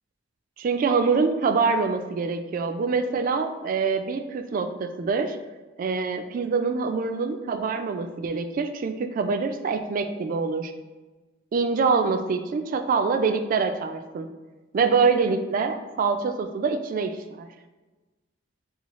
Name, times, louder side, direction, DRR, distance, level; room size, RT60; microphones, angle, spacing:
voice 1, 0.6-5.4 5.8-10.7 11.5-14.3 14.7-17.5, right 4 dB, 45° right, 8 dB, 0.3 m, -25 dB
5.5 x 2.3 x 2.9 m, 1.2 s
head